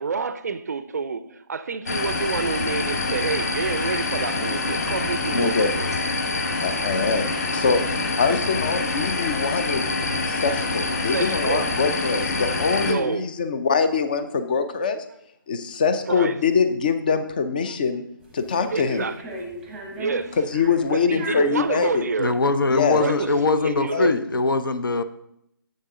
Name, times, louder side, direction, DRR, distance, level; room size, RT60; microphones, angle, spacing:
voice 1, 0.0-5.9 11.0-12.0 12.8-13.3 16.1-16.4 18.7-19.5 20.0-20.4 20.9-22.4 22.9-24.1, right 5 dB, 45° right, 0.4 m, -28 dB
sound 1, 1.9-12.9, left 3 dB, 45° left, 0.9 m, -26 dB
voice 2, 5.3-5.7 6.6-7.3 7.5-7.8 8.2-9.8 10.3-15.0 15.5-18.0 18.3-19.0 20.4-22.1 22.7-23.2 23.6-24.2, left 5 dB, 25° left, 0.4 m, -23 dB
sound 2, 18.2-23.8, left 1 dB, 5° right, 0.9 m, -36 dB
voice 3, 22.2-25.0, left 3 dB, 70° left, 0.7 m, -22 dB
7.5 x 6.4 x 3.7 m
figure-of-eight pair, 160°, 12 cm